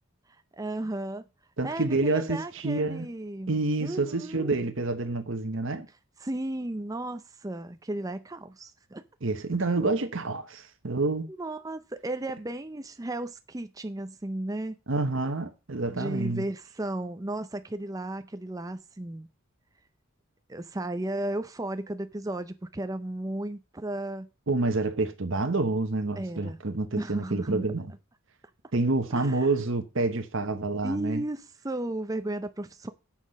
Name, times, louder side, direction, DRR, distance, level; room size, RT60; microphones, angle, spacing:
voice 1, 0.6-1.2 1.6-3.5 3.8-4.5 6.2-9.0 11.4-14.7 15.9-19.3 20.5-24.3 26.2-26.6 27.0-27.6 29.1-29.5 30.8-32.9, right 1 dB, 15° right, 0.5 m, -34 dB
voice 2, 1.6-3.1 3.5-5.9 9.2-11.3 14.9-16.5 24.5-27.9 28.7-31.2, right 3 dB, 60° right, 0.9 m, -28 dB
7.3 x 6.0 x 6.3 m
head